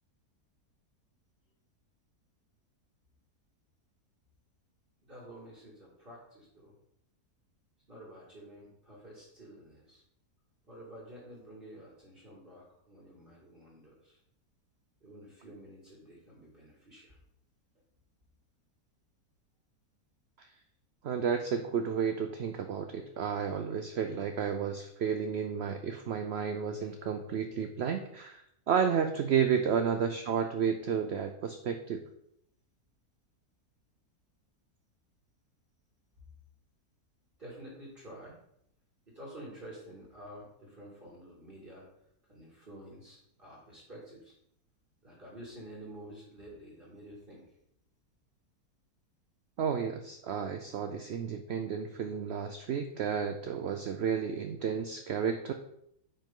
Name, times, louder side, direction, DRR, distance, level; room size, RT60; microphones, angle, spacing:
voice 1, 5.0-6.7 7.9-10.0 10.7-14.2 15.0-17.2 26.8-26.9 37.4-38.4 39.1-41.9 42.3-44.3 45.0-47.4, right 1 dB, 35° right, -5 dB, 2.3 m, -50 dB
voice 2, 21.0-32.0 49.6-55.5, right 7 dB, 65° right, 7 dB, 0.6 m, -32 dB
9.6 x 5.4 x 3.7 m, 0.74 s
omnidirectional pair, 1.7 m